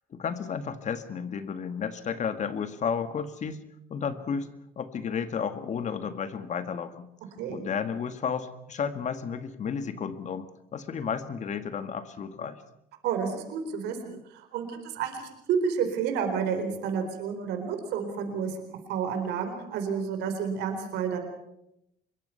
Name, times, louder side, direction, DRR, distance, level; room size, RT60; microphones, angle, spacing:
voice 1, 0.1-3.6 3.9-4.5 4.8-7.1 7.5-12.6, left 6 dB, 45° left, 10 dB, 1.9 m, -32 dB
voice 2, 13.0-18.6 18.9-21.2, right 6 dB, 85° right, 6 dB, 4.3 m, -30 dB
25.5 x 22.0 x 5.7 m, 0.82 s
cardioid pair, 110°, 17 cm